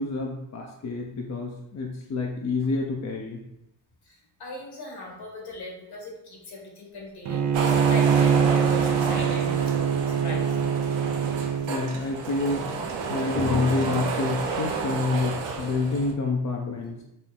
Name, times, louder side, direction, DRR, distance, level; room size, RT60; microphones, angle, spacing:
voice 1, 0.0-3.4 11.7-17.0, left 3 dB, 40° left, 0 dB, 0.6 m, -28 dB
voice 2, 4.1-9.8 10.1-10.7, left 1 dB, 60° left, -1 dB, 1.4 m, -39 dB
Bowed string instrument, 7.3-11.8, right 7 dB, 40° right, 0.5 m, -23 dB
sound 1, 7.5-16.1, right 4 dB, 85° right, 0.7 m, -30 dB
4.3 x 2.0 x 3.7 m, 0.87 s
cardioid pair, 65°, 43 cm